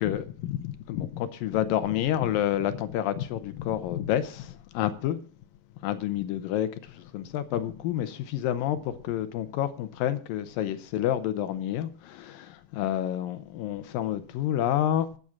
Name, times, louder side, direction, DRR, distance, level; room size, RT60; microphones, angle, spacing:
voice 1, 0.0-5.2 5.8-15.1, left 11 dB, 80° left, 2.5 m, -29 dB
13.5 x 7.9 x 7.2 m
omnidirectional pair, 4.1 m